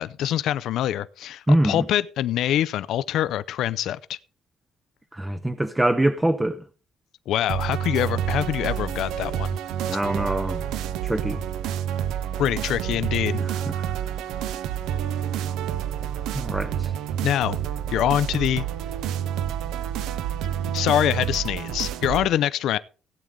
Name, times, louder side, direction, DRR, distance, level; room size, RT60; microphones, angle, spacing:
voice 1, 0.0-4.2 7.3-9.6 12.4-13.4 17.2-17.6 17.9-18.6 20.7-22.8, left 11 dB, 65° left, 0.4 m, -24 dB
voice 2, 1.5-1.8 5.1-6.6 9.9-10.6 11.0-11.4 13.4-13.9 16.3-16.9, right 1 dB, 10° right, 0.5 m, -24 dB
sound 1, 7.5-22.3, right 10 dB, 85° right, 0.7 m, -28 dB
16.0 x 8.7 x 3.7 m
cardioid pair, 155°, 0 cm